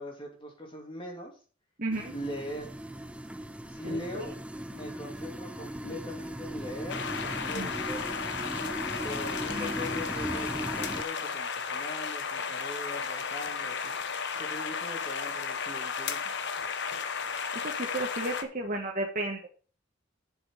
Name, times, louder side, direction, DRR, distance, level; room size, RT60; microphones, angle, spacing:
voice 1, 0.0-1.3 2.1-2.8 3.7-4.4 4.7-8.2 9.0-14.1 14.4-16.3, left 1 dB, 25° left, 0 dB, 2.9 m, -41 dB
voice 2, 1.8-2.1 3.8-4.2 7.5-7.7 9.5-9.7 17.6-19.5, right 2 dB, 40° right, 0 dB, 1.3 m, -33 dB
sound 1, 1.9-11.0, right 1 dB, 5° right, 0.5 m, -38 dB
sound 2, 6.9-18.4, left 6 dB, 55° left, 1.0 m, -34 dB
7.9 x 6.8 x 5.6 m, 0.39 s
head